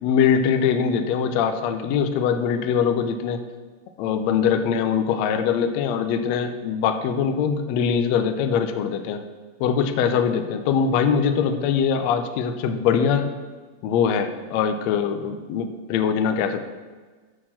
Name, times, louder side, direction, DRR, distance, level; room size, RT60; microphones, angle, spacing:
voice 1, 0.0-3.4 4.0-9.2 9.6-13.3 13.8-16.6, left 7 dB, 85° left, 8 dB, 1.5 m, -22 dB
8.7 x 6.0 x 7.4 m, 1.4 s
omnidirectional pair, 3.9 m